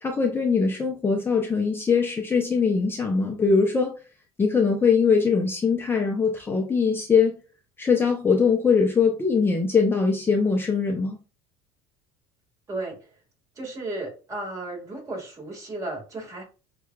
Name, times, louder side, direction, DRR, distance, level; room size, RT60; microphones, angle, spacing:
voice 1, 0.0-3.9 4.4-7.4 7.8-11.2, left 5 dB, 15° left, 2 dB, 0.5 m, -22 dB
voice 2, 12.7-13.1 13.6-16.4, right 2 dB, 25° right, 0 dB, 1.8 m, -34 dB
6.2 x 2.3 x 2.3 m, 0.33 s
supercardioid pair, 120°, 13 cm